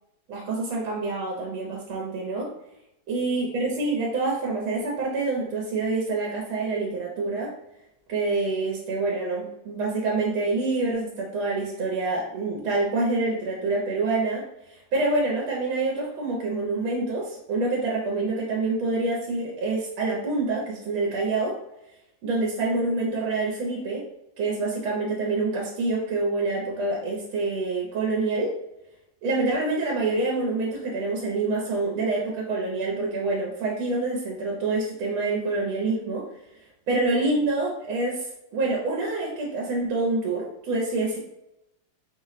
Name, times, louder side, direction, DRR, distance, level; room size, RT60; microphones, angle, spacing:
voice 1, 0.3-2.5 3.1-7.5 8.1-14.4 14.7-21.5 22.2-24.0 24.4-28.5 29.2-36.2 36.9-41.2, right 3 dB, 85° right, -2 dB, 1.6 m, -26 dB
4.5 x 2.1 x 3.9 m, 0.85 s
omnidirectional pair, 2.2 m